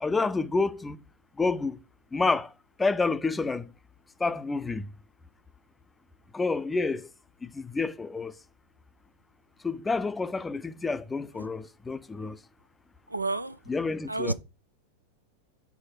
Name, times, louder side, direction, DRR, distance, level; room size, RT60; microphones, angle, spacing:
voice 1, 0.0-1.0 1.4-1.8 2.1-2.5 2.8-3.7 4.2-4.9 6.3-7.1 7.4-8.3 9.6-12.4 13.7-14.3, left 3 dB, 10° left, 0.5 m, -29 dB
voice 2, 13.1-13.6 14.1-14.3, right 2 dB, 85° right, 0.5 m, -29 dB
4.8 x 4.2 x 5.8 m
figure-of-eight pair, 90°, 0 cm